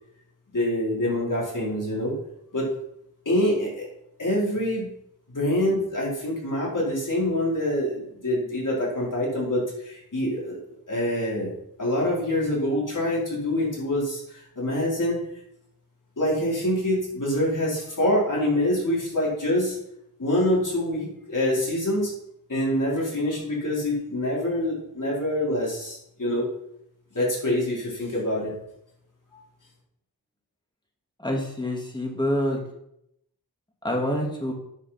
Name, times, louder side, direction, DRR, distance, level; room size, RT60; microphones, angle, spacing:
voice 1, 0.5-2.1 2.5-2.7 3.2-3.9 4.2-4.9 5.3-10.6 10.9-11.5 11.8-15.2 16.2-19.8 20.2-22.1 22.5-26.5 27.1-28.5, left 1 dB, 55° left, -5 dB, 4.7 m, -25 dB
voice 2, 31.2-32.6 33.8-34.5, left 1 dB, 10° left, 0 dB, 2.6 m, -26 dB
9.9 x 5.9 x 5.9 m, 0.77 s
wide cardioid pair, 60°, 36 cm